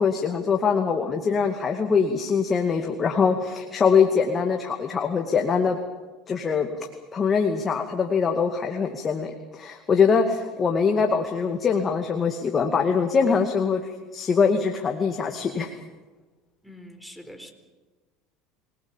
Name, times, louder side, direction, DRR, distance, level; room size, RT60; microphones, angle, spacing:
voice 1, 0.0-5.8 6.3-6.7 7.1-15.7, left 5 dB, 35° left, 4 dB, 2.3 m, -23 dB
voice 2, 16.6-17.5, equal, ahead, 8 dB, 4.1 m, -43 dB
26.0 x 19.5 x 7.4 m, 1.2 s
supercardioid pair, 90°, 0 cm